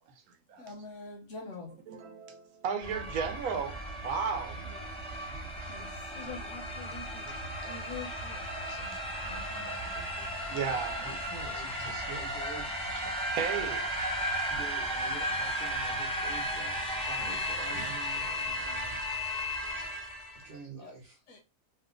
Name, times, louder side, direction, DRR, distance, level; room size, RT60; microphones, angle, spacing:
voice 1, 0.6-1.8 5.7-6.1 20.8-21.0 21.3-21.4, left 2 dB, 65° left, 0.8 m, -45 dB
voice 2, 1.9-3.8 4.0-4.7 5.3-5.6 6.8-6.9 7.6-7.7 8.7-10.1 10.5-11.5 11.8-12.2 13.3-13.9 17.1-17.3 17.7-17.9, right 6 dB, 75° right, 1.1 m, -36 dB
sound 1, 2.8-20.5, equal, 5° left, 0.7 m, -35 dB
voice 3, 6.1-7.3 7.6-8.4 10.1-10.3, left 5 dB, 90° left, 1.1 m, -45 dB
voice 4, 12.0-12.8 14.5-16.8 17.3-19.2 20.4-21.2, right 4 dB, 45° right, 0.8 m, -47 dB
2.7 x 2.2 x 3.6 m
omnidirectional pair, 1.6 m